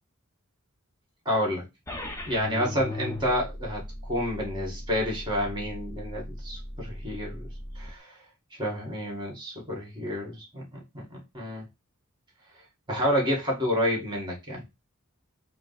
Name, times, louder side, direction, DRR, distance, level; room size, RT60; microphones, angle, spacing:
voice 1, 1.2-1.7 2.2-7.5 7.7-8.1 8.6-11.0 11.3-11.6 12.9-14.6, equal, 20° right, 0 dB, 1.7 m, -29 dB
sound 1, 1.9-7.9, left 1 dB, 15° left, 0.7 m, -38 dB
4.9 x 2.1 x 4.0 m, 0.23 s
head